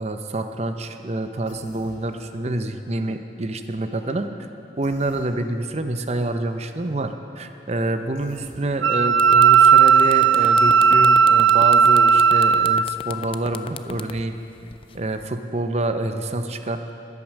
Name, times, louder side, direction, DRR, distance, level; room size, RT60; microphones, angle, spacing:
voice 1, 0.0-4.3 4.8-14.4 14.9-16.9, right 2 dB, 35° right, 8 dB, 0.6 m, -27 dB
Human voice, 1.4-2.0 4.8-5.3 8.1-8.6, left 1 dB, 65° left, 3.1 m, -47 dB
sound 1, 8.7-8.8 9.1-15.2, left 5 dB, 30° left, 0.3 m, -36 dB
Wind instrument woodwind instrument, 8.8-12.8, right 6 dB, 75° right, 0.4 m, -15 dB
13.5 x 10.5 x 6.4 m, 2.8 s
head